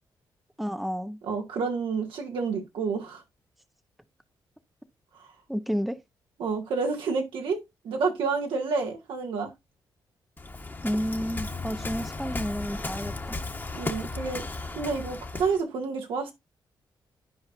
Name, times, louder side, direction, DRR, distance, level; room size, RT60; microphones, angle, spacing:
voice 1, 0.6-1.2 5.5-6.0 10.8-13.4, equal, ahead, 0.7 m, -31 dB
voice 2, 1.2-3.2 6.4-7.6 7.8-9.5 13.7-16.3, right 4 dB, 85° right, 2.1 m, -29 dB
Waves surf, 10.4-15.6, left 3 dB, 25° left, 1.2 m, -35 dB
11.5 x 4.8 x 2.6 m
cardioid pair, 80°, 8 cm